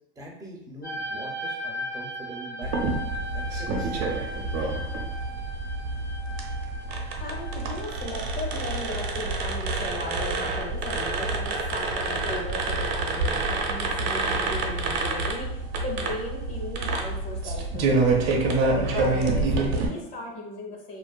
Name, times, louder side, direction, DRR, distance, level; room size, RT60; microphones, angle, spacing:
voice 1, 0.2-2.8 3.3-4.2, right 1 dB, 10° right, -1 dB, 0.5 m, -42 dB
sound 1, 0.8-13.8 14.0-14.8 15.6-15.8, equal, 75° left, 1.1 m, -39 dB
sound 2, 2.6-19.9, right 3 dB, 80° right, 0.6 m, -27 dB
voice 2, 7.1-18.3 18.6-21.0, left 1 dB, 50° left, 0 dB, 0.8 m, -36 dB
2.5 x 2.4 x 2.2 m, 0.90 s
supercardioid pair, 125°, 29 cm